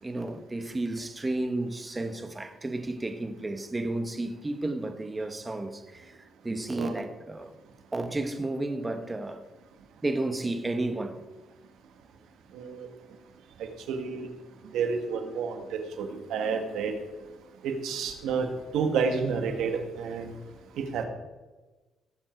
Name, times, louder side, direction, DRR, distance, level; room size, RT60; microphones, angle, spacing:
voice 1, 0.0-6.2 6.4-7.5 7.9-9.4 10.0-11.3, right 2 dB, 20° right, 1.4 m, -32 dB
voice 2, 12.5-12.9 13.9-14.3 14.7-15.6 16.0-16.9 17.6-18.5 18.7-20.3 20.9-21.0, right 5 dB, 80° right, 1.9 m, -29 dB
18.5 x 7.5 x 4.7 m
cardioid pair, 90°, 0 cm